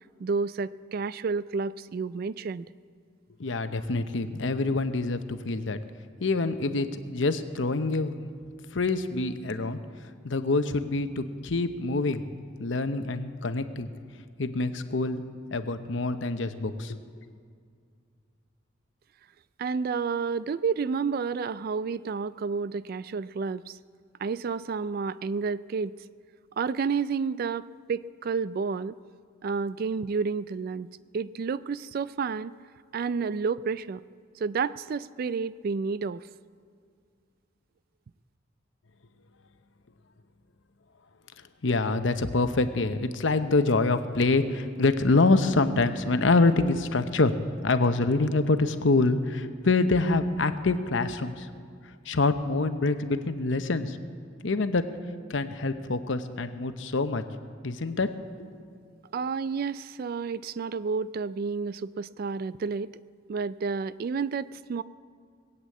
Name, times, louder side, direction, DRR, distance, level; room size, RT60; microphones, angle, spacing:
voice 1, 0.2-2.6 19.6-23.8 24.2-25.9 26.6-29.0 29.4-32.5 32.9-34.0 34.4-36.3 59.1-62.9 63.3-64.8, right 5 dB, 50° right, 18 dB, 0.3 m, -30 dB
voice 2, 3.4-5.8 6.2-8.3 8.7-9.8 10.2-12.2 12.6-13.9 14.4-15.2 15.5-17.0 41.6-47.3 47.6-51.5 52.1-54.0 54.4-54.9 55.3-57.2 57.6-58.1, left 3 dB, 70° left, 10 dB, 0.8 m, -26 dB
20.0 x 8.2 x 8.3 m, 2.2 s
head